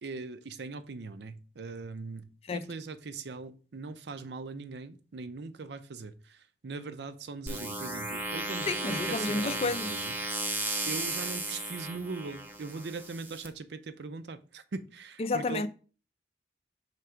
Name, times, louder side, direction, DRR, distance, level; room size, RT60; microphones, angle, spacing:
voice 1, 0.0-10.2 10.9-15.7, right 4 dB, 75° right, 0.5 m, -40 dB
sound 1, 7.5-13.5, right 2 dB, 10° right, 0.6 m, -35 dB
voice 2, 8.7-9.9 15.2-15.7, left 3 dB, 35° left, 0.4 m, -31 dB
5.7 x 3.4 x 4.9 m
head